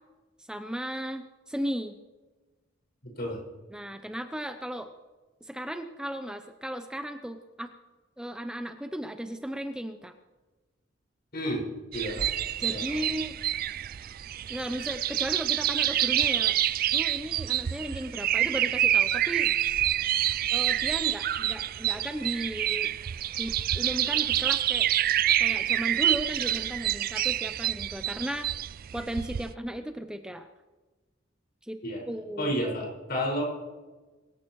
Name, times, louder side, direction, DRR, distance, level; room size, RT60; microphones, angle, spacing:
voice 1, 0.4-2.0 3.7-4.9 5.4-7.7 8.2-10.1 12.6-13.4 14.5-16.6 16.9-19.5 20.5-22.9 23.4-24.9 25.4-28.5 28.9-30.5 31.6-31.8 32.1-32.5, equal, 5° right, 7 dB, 0.6 m, -35 dB
voice 2, 11.9-12.3 12.7-13.0 31.8-32.0 32.4-33.4, equal, 55° left, -2 dB, 5.5 m, -30 dB
sound 1, 11.9-29.5, right 12 dB, 50° right, 0.4 m, -27 dB
24.0 x 15.0 x 3.1 m, 1.2 s
head